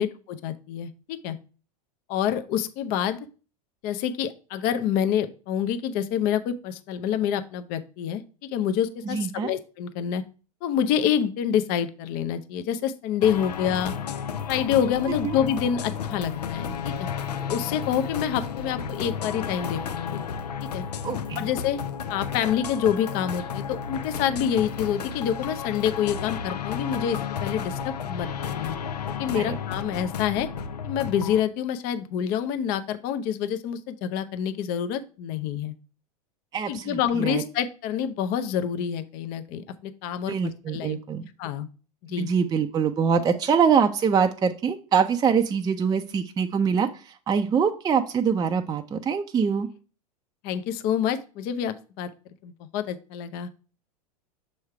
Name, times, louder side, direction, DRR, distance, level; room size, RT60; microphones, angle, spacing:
voice 1, 0.0-1.4 2.1-3.3 3.8-10.2 10.6-13.9 14.5-17.1 17.5-20.2 20.7-20.8 21.4-21.8 22.1-28.7 29.2-30.5 30.8-35.7 36.7-41.0 41.4-41.7 42.0-42.3 50.4-52.1 52.4-53.5, left 9 dB, 50° left, 10 dB, 0.7 m, -27 dB
voice 2, 9.1-9.5 15.2-15.4 21.0-21.5 29.3-29.6 36.5-37.4 40.3-41.2 42.1-49.7, right 6 dB, 20° right, 6 dB, 0.5 m, -24 dB
sound 1, 13.2-31.4, left 7 dB, 85° left, 0.5 m, -32 dB
6.3 x 3.2 x 4.7 m, 0.36 s
hypercardioid pair, 90°, 20 cm